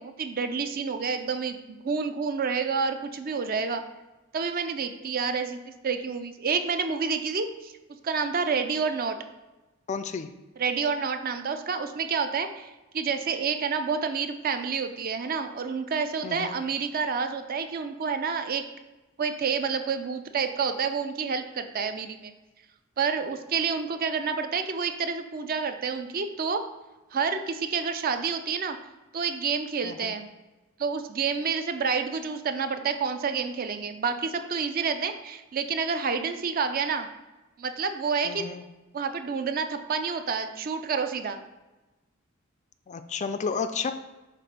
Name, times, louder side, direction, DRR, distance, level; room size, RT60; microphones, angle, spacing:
voice 1, 0.0-3.8 4.3-7.7 8.0-9.2 10.6-18.6 19.2-22.3 23.0-26.6 27.1-28.8 29.1-30.3 30.8-37.1 37.6-38.4 38.9-41.4, right 5 dB, 45° right, 8 dB, 0.5 m, -29 dB
voice 2, 9.9-10.3 16.2-16.6 29.8-30.1 38.2-38.6 42.9-43.9, left 5 dB, 35° left, 10 dB, 0.3 m, -32 dB
7.3 x 2.5 x 5.2 m, 1.1 s
head